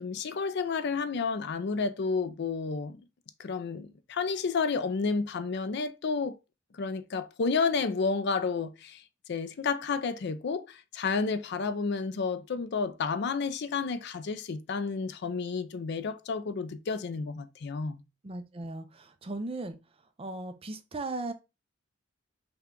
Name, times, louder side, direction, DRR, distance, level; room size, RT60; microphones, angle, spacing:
voice 1, 0.0-3.0 3.4-6.4 6.7-9.0 9.3-18.0, left 4 dB, 55° left, 0.4 m, -31 dB
voice 2, 18.2-19.8 20.2-21.3, right 2 dB, 30° right, 0.5 m, -37 dB
5.7 x 2.3 x 3.7 m
head